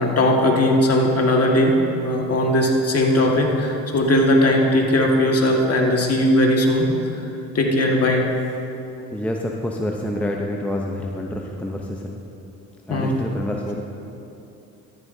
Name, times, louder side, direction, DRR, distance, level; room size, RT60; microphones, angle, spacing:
voice 1, 0.0-1.8 2.0-6.9 7.5-8.3 12.9-13.2, left 1 dB, 35° left, 0 dB, 1.9 m, -18 dB
voice 2, 9.1-12.2 12.9-13.8, left 1 dB, 5° left, 0 dB, 0.8 m, -27 dB
14.0 x 11.0 x 2.8 m, 2.8 s
hypercardioid pair, 65°, 41 cm